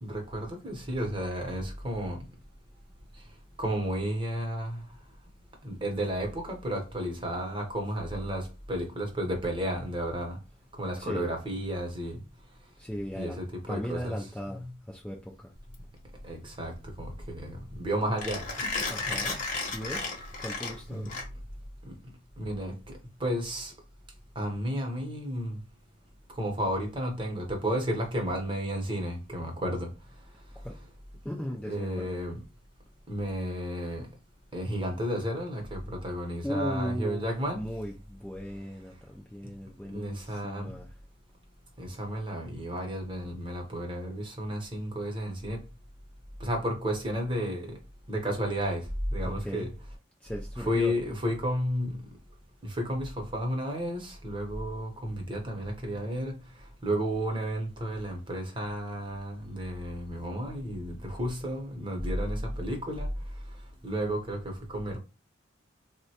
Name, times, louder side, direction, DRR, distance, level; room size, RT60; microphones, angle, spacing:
voice 1, 0.0-2.2 3.6-4.8 5.6-10.4 10.8-12.2 13.1-14.2 14.5-14.7 16.2-19.2 20.9-21.1 21.8-22.0 22.4-23.7 24.4-25.6 26.3-29.9 31.6-32.4 33.1-34.1 34.5-37.6 39.9-40.7 41.8-45.6 46.4-47.8 48.1-49.7 50.6-52.0 52.6-56.4 56.8-63.1 63.8-65.0, equal, 25° right, 0.8 m, -32 dB
voice 2, 12.8-15.5 18.9-19.4 19.7-20.1 20.4-21.2 30.6-30.8 31.2-32.1 36.4-37.2 37.5-40.9 49.2-49.7 50.2-50.9, equal, 5° left, 0.3 m, -37 dB
Mechanisms, 15.6-21.7, left 3 dB, 40° left, 0.8 m, -35 dB
3.7 x 2.1 x 2.8 m
head